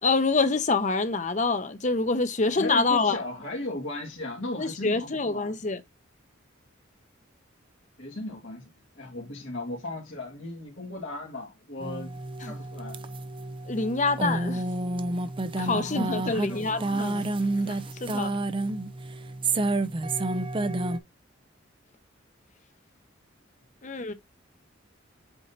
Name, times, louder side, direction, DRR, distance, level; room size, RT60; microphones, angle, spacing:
voice 1, 0.0-3.2 4.6-5.8 12.4-12.5 13.7-14.6 15.6-17.2 17.6-18.3 23.8-24.1, left 3 dB, 40° left, 0.9 m, -26 dB
voice 2, 2.6-5.6 8.0-12.1 12.4-13.0 15.5-17.1, left 2 dB, 80° left, 2.2 m, -36 dB
sound 1, 11.8-21.0, right 2 dB, 25° right, 0.5 m, -30 dB
8.1 x 2.9 x 4.0 m
head